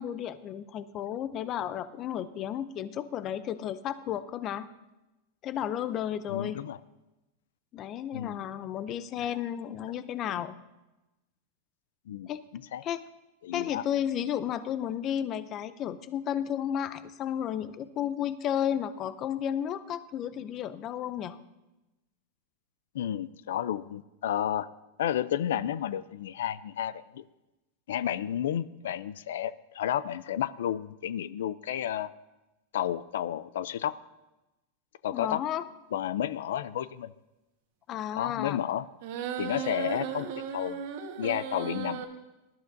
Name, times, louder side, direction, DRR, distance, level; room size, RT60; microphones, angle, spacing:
voice 1, 0.0-4.7 5.4-6.6 7.7-10.6 12.3-12.4 12.8-13.0 13.5-21.4 35.1-35.6 37.9-38.6, left 10 dB, 30° left, 14 dB, 0.5 m, -33 dB
voice 2, 6.3-6.8 8.1-8.4 9.2-9.3 12.1-12.8 13.4-13.8 22.9-24.7 25.0-27.2 27.9-32.1 32.7-33.9 35.0-35.4 35.9-37.1 38.1-38.9 39.4-40.8 41.2-42.0, left 10 dB, 85° left, 17 dB, 0.4 m, -32 dB
sound 1, 39.0-42.0, right 8 dB, 55° right, 1.3 m, -36 dB
19.5 x 12.0 x 2.6 m, 1.0 s
supercardioid pair, 160°, 0 cm